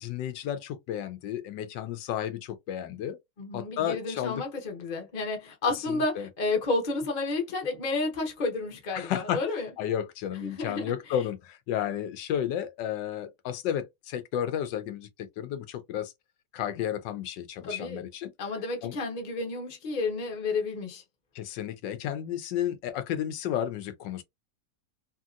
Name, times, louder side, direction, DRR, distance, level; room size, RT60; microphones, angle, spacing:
voice 1, 0.0-3.2 3.5-4.4 5.9-6.3 8.9-9.4 9.8-16.1 16.5-18.3 18.8-19.0 21.4-24.2, left 10 dB, 85° left, 1.3 m, -32 dB
voice 2, 3.4-9.7 10.4-10.8 17.6-18.1 18.4-21.0, left 3 dB, 35° left, 0.8 m, -31 dB
2.9 x 2.8 x 2.4 m
omnidirectional pair, 1.9 m